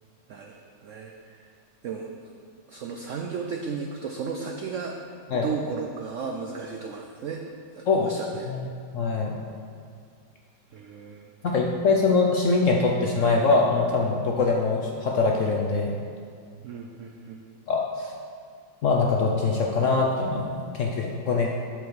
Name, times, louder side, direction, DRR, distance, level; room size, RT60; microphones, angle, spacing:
voice 1, 0.3-1.4 1.8-2.3 2.7-5.0 5.3-7.5 7.7-8.5 10.7-11.6 16.6-17.4, right 5 dB, 80° right, 2 dB, 0.6 m, -35 dB
voice 2, 8.9-9.4 11.4-15.9 17.7-18.1 18.8-21.5, left 4 dB, 65° left, 0 dB, 0.8 m, -23 dB
7.8 x 7.0 x 4.7 m, 2.2 s
omnidirectional pair, 2.0 m